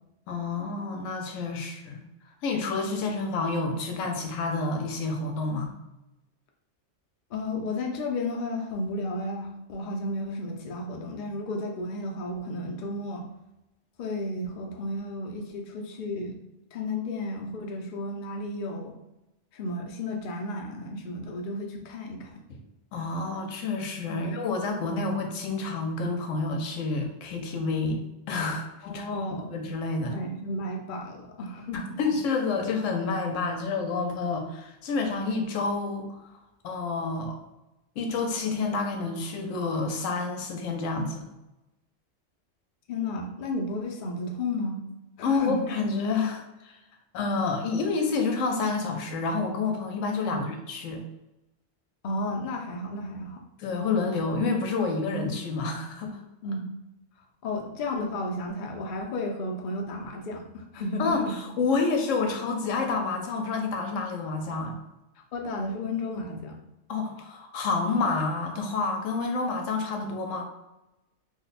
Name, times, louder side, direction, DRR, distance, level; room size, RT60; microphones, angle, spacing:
voice 1, 0.3-2.0 2.4-5.7 22.5-22.6 22.9-28.0 28.3-29.2 29.5-30.2 31.7-36.2 36.6-37.4 38.0-41.3 45.2-46.8 47.1-51.0 53.6-56.1 61.0-64.8 66.9-70.4, left 4 dB, 85° left, 3 dB, 1.0 m, -29 dB
voice 2, 7.3-13.3 14.0-16.4 16.7-19.0 19.5-22.4 24.1-24.2 28.8-29.5 30.1-32.0 42.9-44.8 45.2-45.7 50.2-50.4 52.0-53.4 56.4-56.7 57.4-61.3 65.3-66.6, left 2 dB, 55° left, 1 dB, 0.6 m, -33 dB
2.9 x 2.2 x 4.0 m, 0.94 s
omnidirectional pair, 1.3 m